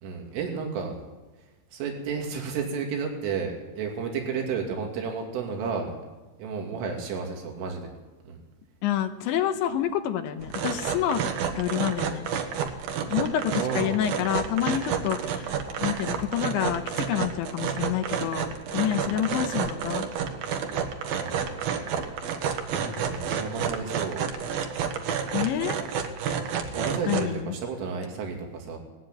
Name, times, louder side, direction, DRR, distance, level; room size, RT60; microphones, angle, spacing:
voice 1, 0.0-1.0 1.7-6.0 6.4-7.9 8.3-8.4 13.6-14.0 19.0-19.2 21.1-21.6 22.7-24.3 26.7-28.8, right 5 dB, 85° right, 2 dB, 5.2 m, -32 dB
voice 2, 8.8-11.2 11.6-12.3 13.1-18.5 18.7-20.1 25.3-25.8 27.1-27.6, left 11 dB, 80° left, 7 dB, 3.3 m, -28 dB
sound 1, 10.4-27.4, right 7 dB, 65° right, 2.9 m, -30 dB
19.0 x 15.5 x 9.1 m, 1.1 s
omnidirectional pair, 5.5 m